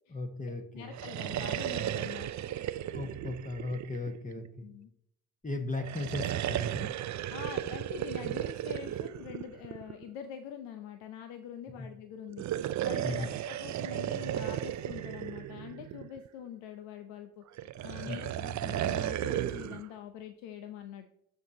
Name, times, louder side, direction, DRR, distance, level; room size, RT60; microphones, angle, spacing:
voice 1, 0.1-0.9 2.6-4.7 5.4-6.9 11.8-11.9 13.0-13.3 18.1-18.2 18.5-18.7, left 2 dB, 15° left, 5 dB, 1.3 m, -37 dB
voice 2, 0.7-2.5 4.6-4.9 7.3-21.1, left 9 dB, 75° left, 8 dB, 0.7 m, -45 dB
sound 1, 0.8-4.5 5.8-10.1 12.3-16.3 17.6-19.8, right 12 dB, 40° right, 0.5 m, -35 dB
12.5 x 4.7 x 2.8 m, 0.76 s
hypercardioid pair, 50°, 44 cm